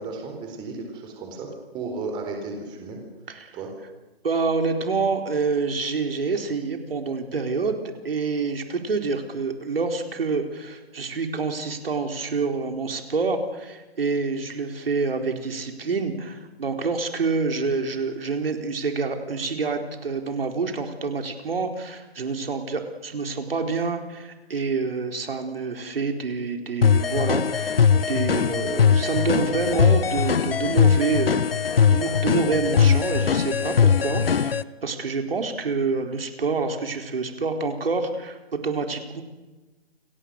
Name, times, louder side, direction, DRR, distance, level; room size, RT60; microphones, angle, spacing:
voice 1, 0.0-1.5 1.7-3.0 3.5-3.7, right 3 dB, 15° right, 3 dB, 4.3 m, -34 dB
voice 2, 4.2-7.8 8.0-38.4 38.6-39.2, right 4 dB, 65° right, 5 dB, 4.4 m, -27 dB
sound 1, 26.8-34.6, left 7 dB, 65° left, 1.1 m, -20 dB
29.5 x 23.0 x 6.7 m, 1.1 s
figure-of-eight pair, 155°, 31 cm